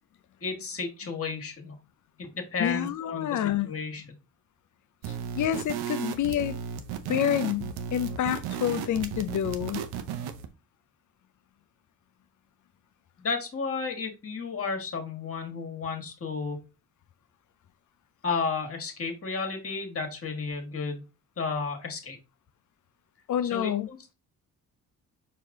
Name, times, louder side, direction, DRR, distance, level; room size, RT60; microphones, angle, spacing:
voice 1, 0.4-1.7 2.2-3.4 3.6-4.0 13.2-16.6 18.2-21.0 21.4-22.2 23.5-24.1, left 4 dB, 35° left, 1.5 m, -32 dB
voice 2, 2.6-3.7 5.1-6.6 7.1-9.8 23.3-23.9, left 10 dB, 50° left, 0.6 m, -28 dB
sound 1, 5.0-10.5, right 7 dB, 80° right, 0.7 m, -35 dB
4.6 x 2.9 x 3.6 m
supercardioid pair, 55°, 39 cm